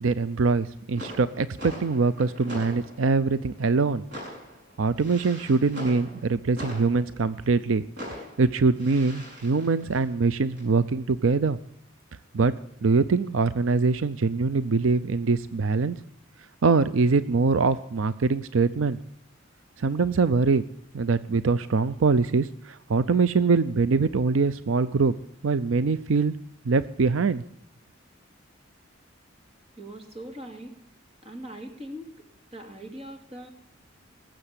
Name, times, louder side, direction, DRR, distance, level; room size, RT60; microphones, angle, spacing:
voice 1, 0.0-4.0 4.8-7.8 8.4-11.6 12.3-12.5 12.8-16.0 16.6-19.0 19.8-20.6 20.9-25.1 25.4-26.3 26.7-27.4, right 4 dB, 80° right, 15 dB, 0.5 m, -23 dB
sound 1, 0.6-0.7 0.9-7.7 8.0-10.6, equal, 60° right, 6.5 m, -42 dB
voice 2, 29.8-30.7 31.2-32.1 32.5-33.5, right 1 dB, 30° right, 4 dB, 2.6 m, -40 dB
19.5 x 7.7 x 8.3 m, 0.71 s
head